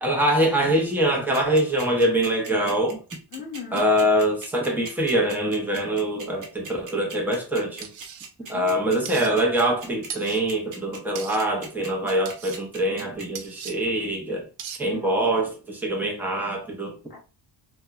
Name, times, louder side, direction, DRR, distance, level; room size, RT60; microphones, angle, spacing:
voice 1, 0.0-3.0 3.7-7.9 8.5-14.5 14.8-17.0, right 1 dB, 5° right, 0.4 m, -24 dB
sound 1, 1.3-13.2, right 4 dB, 40° right, 0.7 m, -39 dB
voice 2, 3.3-3.9 8.4-9.2 14.8-15.3 17.1-17.2, left 7 dB, 50° left, 0.9 m, -39 dB
sound 2, 7.8-8.3 9.1-9.3 10.1-10.4 11.2-11.4 12.3-12.6 13.4-13.7 14.6-14.8, right 8 dB, 90° right, 0.6 m, -37 dB
2.9 x 2.1 x 2.2 m
wide cardioid pair, 170°, 49 cm